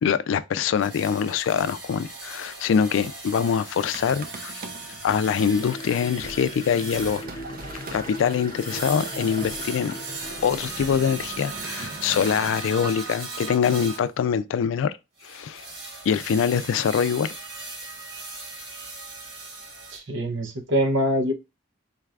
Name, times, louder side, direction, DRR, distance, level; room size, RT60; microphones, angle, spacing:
voice 1, 0.0-4.6 5.0-7.2 7.9-9.9 10.4-15.0 15.2-15.6 16.1-17.3, left 7 dB, 80° left, 0.3 m, -24 dB
bowed saw, 0.8-14.1 15.2-20.0, right 3 dB, 70° right, 1.5 m, -38 dB
sound 1, 3.8-12.6, right 4 dB, 50° right, 0.5 m, -41 dB
sound 2, 5.2-11.5, left 2 dB, 25° left, 0.5 m, -40 dB
voice 2, 19.9-21.3, equal, 90° right, 0.7 m, -24 dB
4.0 x 2.4 x 3.3 m
head